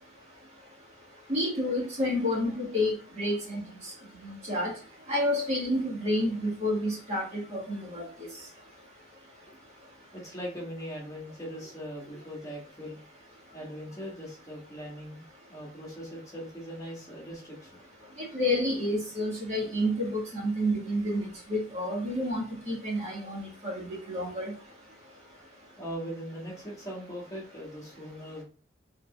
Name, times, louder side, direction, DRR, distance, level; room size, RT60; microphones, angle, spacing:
voice 1, 1.3-3.6 4.2-4.7 5.1-8.1 18.3-24.5, left 1 dB, 35° right, -3 dB, 1.9 m, -29 dB
voice 2, 10.1-13.0 13.5-15.2 15.5-17.7 25.8-28.4, equal, 20° left, -4 dB, 1.8 m, -40 dB
5.2 x 3.8 x 2.4 m, 0.37 s
head